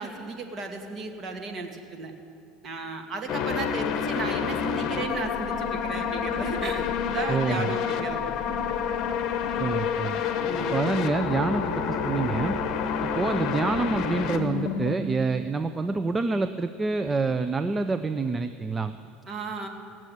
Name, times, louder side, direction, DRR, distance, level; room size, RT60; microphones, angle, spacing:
voice 1, 0.0-2.1 2.6-8.3 10.4-10.8 19.3-19.7, right 3 dB, 35° right, 3 dB, 2.0 m, -35 dB
sound 1, 3.3-15.0, left 7 dB, 50° left, 1.1 m, -28 dB
voice 2, 7.3-7.8 9.6-10.2 10.7-12.6 13.1-18.9, right 3 dB, 20° right, 10 dB, 0.4 m, -27 dB
17.5 x 7.5 x 9.3 m, 2.6 s
supercardioid pair, 115°, 0 cm